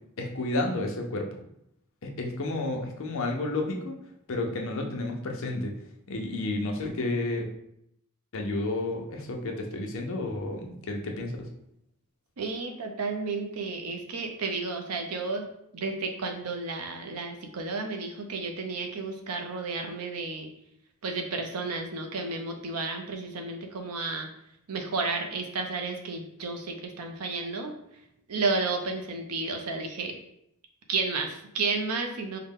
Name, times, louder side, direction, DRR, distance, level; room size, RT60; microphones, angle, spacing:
voice 1, 0.2-1.3 2.0-3.9 4.3-5.7 6.1-7.5 8.3-11.3, left 2 dB, 60° left, 2 dB, 0.6 m, -31 dB
voice 2, 12.4-15.5 15.7-20.5 21.0-24.3 24.7-27.7 28.3-30.1 30.9-32.4, right 3 dB, 80° right, 4 dB, 0.6 m, -32 dB
3.8 x 2.1 x 3.6 m, 0.76 s
head